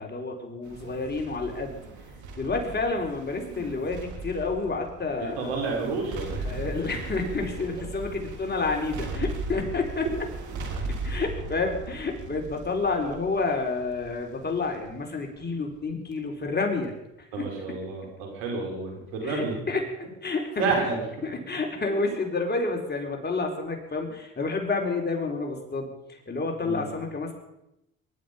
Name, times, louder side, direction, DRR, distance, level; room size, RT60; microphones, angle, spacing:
voice 1, 0.0-1.7 2.4-5.5 6.4-10.1 10.9-16.9 17.4-17.5 19.2-19.8 20.2-20.7 21.2-25.9 26.3-27.3, left 3 dB, 30° left, 2 dB, 4.6 m, -29 dB
sound 1, 0.6-16.1 16.5-16.6, right 3 dB, 70° right, 3.7 m, -38 dB
voice 2, 5.2-6.6 17.3-19.6 20.6-21.0 26.6-27.0, right 4 dB, 90° right, 1 dB, 4.8 m, -30 dB
22.5 x 11.5 x 5.3 m, 0.87 s
supercardioid pair, 65°, 31 cm